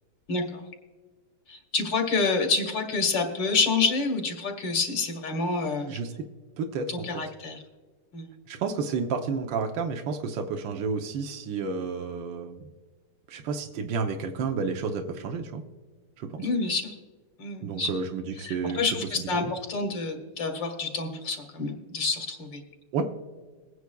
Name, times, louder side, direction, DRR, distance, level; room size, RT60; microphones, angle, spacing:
voice 1, 0.3-0.6 1.5-5.9 6.9-7.6 8.1-8.3 16.4-17.0 17.4-17.9 18.4-22.6, left 4 dB, 80° left, 3 dB, 2.2 m, -28 dB
voice 2, 5.9-6.2 6.6-6.9 8.5-12.6 13.3-15.6 16.2-16.5 17.6-18.8 19.2-19.3 22.9-23.1, right 5 dB, 80° right, 3 dB, 1.5 m, -31 dB
22.0 x 9.4 x 2.3 m, 1.4 s
omnidirectional pair, 2.0 m